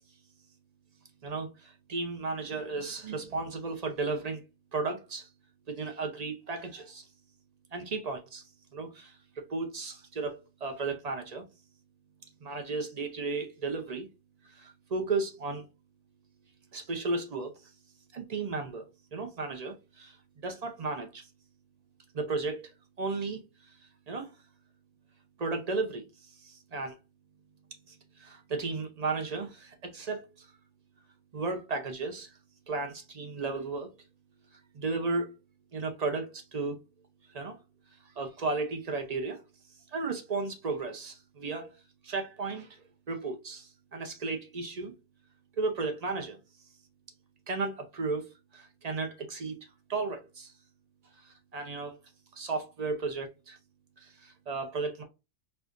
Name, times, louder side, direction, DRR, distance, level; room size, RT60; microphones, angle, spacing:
voice 1, 1.2-4.4 4.7-5.3 5.7-7.1 7.7-8.4 8.7-11.5 12.4-14.1 14.5-15.7 16.7-17.6 18.1-20.2 20.4-21.3 22.1-22.7 23.0-23.4 24.1-24.3 25.4-27.0 27.9-30.5 31.3-32.3 32.7-33.9 34.7-35.3 35.7-36.8 37.3-37.6 38.2-39.4 39.9-41.7 42.0-44.9 45.6-46.4 47.5-49.6 49.9-50.5 51.2-52.0 52.3-53.6 54.0-55.0, right 3 dB, 45° right, 0.5 m, -34 dB
4.4 x 2.4 x 2.4 m
omnidirectional pair, 1.4 m